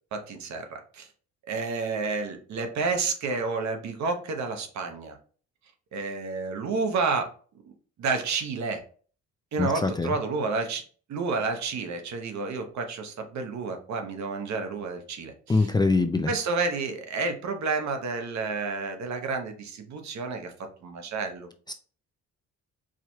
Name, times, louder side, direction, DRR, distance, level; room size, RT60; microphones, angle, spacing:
voice 1, 0.1-1.1 1.5-5.2 5.9-7.2 8.0-8.8 9.5-10.8 11.1-15.7 16.3-20.5 20.8-21.5, right 4 dB, 65° right, 5 dB, 1.0 m, -30 dB
voice 2, 9.6-10.1 15.5-16.3 21.7-21.8, left 3 dB, 15° left, 7 dB, 0.4 m, -23 dB
4.8 x 2.9 x 2.3 m, 0.42 s
cardioid pair, 90°, 30 cm